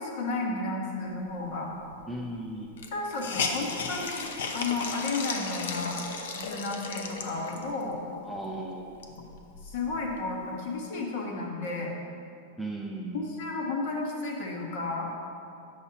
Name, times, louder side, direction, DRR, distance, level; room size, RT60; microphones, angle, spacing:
voice 1, 0.0-1.7 2.9-4.3 4.5-6.0 6.4-8.0 9.1-9.2 9.6-11.9 13.1-15.1, left 3 dB, 50° left, 0 dB, 1.2 m, -32 dB
Hiss, 1.9-2.0 2.2-2.3 2.8-7.8 8.4-8.5 8.8-10.2, left 4 dB, 75° left, 0.7 m, -35 dB
voice 2, 2.1-2.7 8.2-8.9 12.6-13.3, right 1 dB, ahead, -3 dB, 0.4 m, -36 dB
9.7 x 6.7 x 2.8 m, 2.5 s
supercardioid pair, 175°, 0 cm